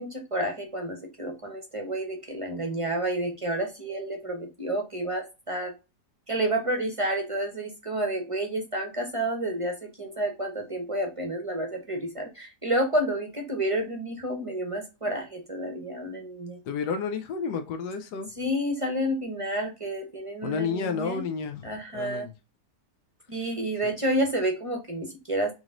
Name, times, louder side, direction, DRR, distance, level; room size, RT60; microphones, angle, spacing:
voice 1, 0.0-5.7 6.3-16.6 18.4-21.2 21.6-22.3 23.3-25.5, right 1 dB, 30° right, 3 dB, 0.7 m, -30 dB
voice 2, 16.7-18.3 20.4-22.3 23.8-23.9, left 5 dB, 85° left, 7 dB, 1.2 m, -31 dB
3.9 x 3.2 x 3.6 m, 0.27 s
omnidirectional pair, 1.7 m